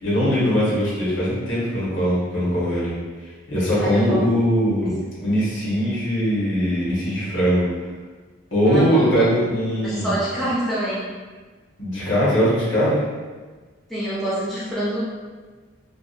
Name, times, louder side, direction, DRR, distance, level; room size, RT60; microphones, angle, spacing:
voice 1, 0.0-2.9 3.5-7.7 8.5-10.4 11.8-13.0, equal, 65° left, -8 dB, 0.9 m, -21 dB
voice 2, 3.7-4.2 8.7-9.2 9.8-11.0 13.9-15.0, right 1 dB, ahead, -10 dB, 0.5 m, -26 dB
2.6 x 2.1 x 2.4 m, 1.4 s
head